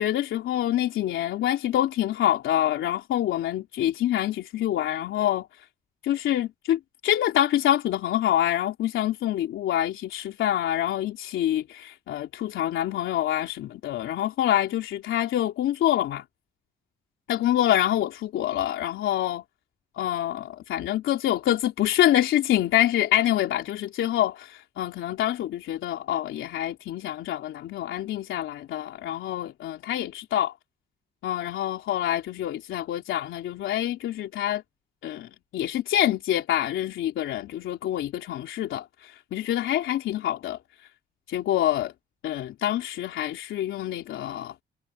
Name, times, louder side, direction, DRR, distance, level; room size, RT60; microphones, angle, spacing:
voice 1, 0.0-5.5 6.0-16.2 17.3-19.4 20.0-30.5 31.2-34.6 35.0-40.6 41.3-41.9 42.2-44.5, left 12 dB, 80° left, 3.4 m, -26 dB
cardioid pair, 90°, 20 cm